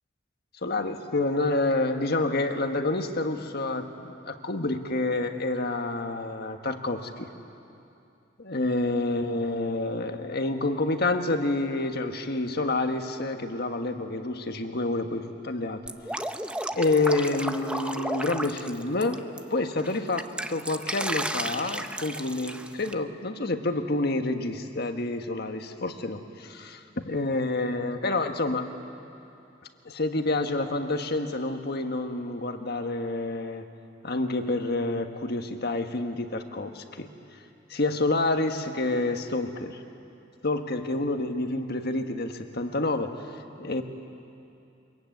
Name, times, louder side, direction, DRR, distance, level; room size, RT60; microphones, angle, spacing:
voice 1, 0.6-7.3 8.4-15.8 16.1-16.2 16.7-19.2 19.5-28.7 29.8-33.7 34.0-37.1 37.7-39.8 40.4-43.8, left 2 dB, 55° left, 6 dB, 1.5 m, -28 dB
Drip, 15.9-19.4 19.8-22.9, right 1 dB, 5° right, 0.6 m, -33 dB
25.0 x 22.5 x 9.3 m, 2.7 s
head